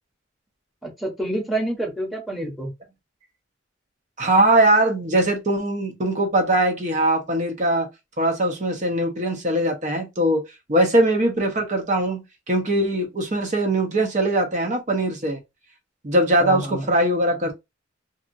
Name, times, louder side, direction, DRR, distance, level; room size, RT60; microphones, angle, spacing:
voice 1, 0.8-2.7 16.4-16.9, right 1 dB, ahead, 1.0 m, -28 dB
voice 2, 4.2-7.9 8.2-10.4 10.7-15.4 16.0-17.5, right 1 dB, 40° right, 0.8 m, -21 dB
2.7 x 2.5 x 2.6 m
head